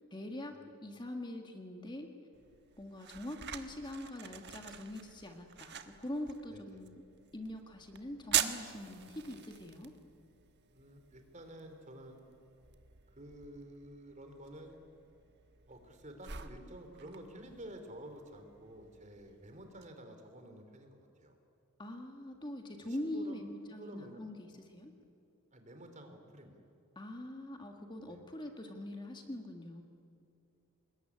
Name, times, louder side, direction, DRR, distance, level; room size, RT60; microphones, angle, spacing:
voice 1, 0.0-0.5 0.8-2.1 2.8-7.0 7.3-9.9 21.8-24.9 26.9-29.8, left 1 dB, 20° left, 4 dB, 1.6 m, -43 dB
sound 1, 2.3-19.9, right 10 dB, 50° right, 1.3 m, -44 dB
voice 2, 6.5-6.8 10.7-12.2 13.1-14.8 15.7-21.4 22.8-23.4 23.7-24.2 25.5-26.6 28.1-28.2, right 1 dB, 35° right, 6 dB, 3.3 m, -51 dB
26.5 x 21.0 x 9.9 m, 2.6 s
head